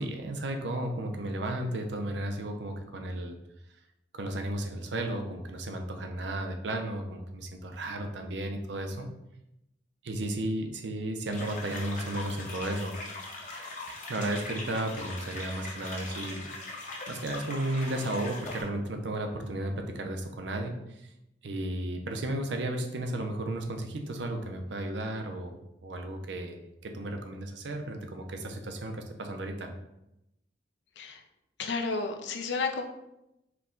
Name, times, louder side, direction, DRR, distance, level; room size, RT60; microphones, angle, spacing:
voice 1, 0.0-3.3 4.1-9.1 10.0-12.9 14.1-16.8 17.1-20.8 21.4-26.6 26.8-29.7, right 1 dB, 75° right, 4 dB, 0.6 m, -34 dB
sound 1, 11.3-18.6, left 2 dB, 45° left, 0.9 m, -41 dB
voice 2, 31.6-32.8, left 4 dB, 75° left, 3 dB, 0.5 m, -31 dB
4.6 x 2.2 x 3.7 m, 0.87 s
head